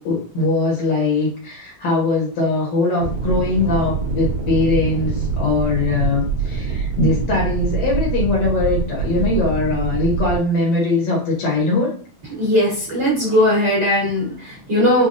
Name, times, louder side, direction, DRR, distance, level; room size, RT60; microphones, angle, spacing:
voice 1, 0.0-11.9, left 3 dB, 65° left, -3 dB, 2.0 m, -21 dB
sound 1, 3.0-10.4, right 5 dB, 90° right, 1.1 m, -24 dB
voice 2, 12.3-15.1, left 1 dB, 45° right, -8 dB, 1.6 m, -18 dB
5.3 x 2.2 x 2.6 m, 0.42 s
omnidirectional pair, 3.6 m